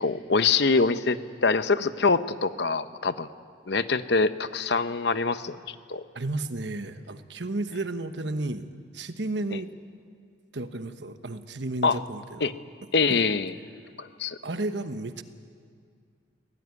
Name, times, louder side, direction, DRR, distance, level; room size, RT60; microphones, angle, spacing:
voice 1, 0.0-3.3 3.7-6.0 9.5-9.6 11.8-12.0 12.4-12.5 12.9-13.5 14.0-14.4, left 4 dB, 60° left, 12 dB, 0.8 m, -24 dB
voice 2, 6.1-9.7 10.5-12.5 13.1-13.2 14.4-15.2, right 2 dB, 65° right, 10 dB, 1.2 m, -33 dB
24.0 x 17.5 x 9.7 m, 2.2 s
head